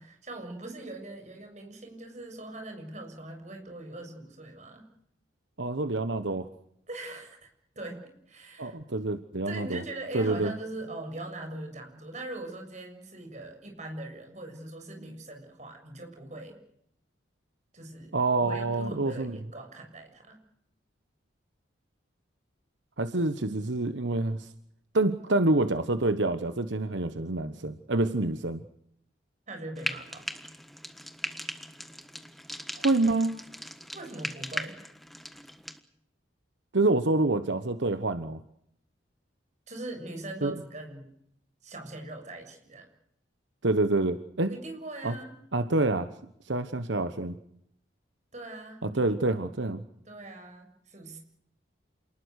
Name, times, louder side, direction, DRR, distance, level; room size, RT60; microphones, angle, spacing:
voice 1, 0.0-4.9 6.9-7.5 7.7-8.8 9.5-16.6 17.7-20.4 29.5-30.3 33.9-34.8 39.7-41.1 41.6-42.9 44.5-45.3 48.3-49.0 50.1-51.2, right 2 dB, 40° right, 4 dB, 6.9 m, -41 dB
voice 2, 5.6-6.5 8.6-9.8 10.1-10.5 18.1-19.4 23.0-24.5 24.9-28.6 32.8-33.4 36.7-38.4 40.4-40.5 43.6-44.5 45.0-45.1 45.5-46.1 46.4-47.4 48.8-49.8, right 2 dB, 75° right, 10 dB, 1.2 m, -27 dB
Frying (food), 29.8-35.8, equal, ahead, 1.4 m, -39 dB
28.5 x 20.0 x 6.5 m, 0.73 s
head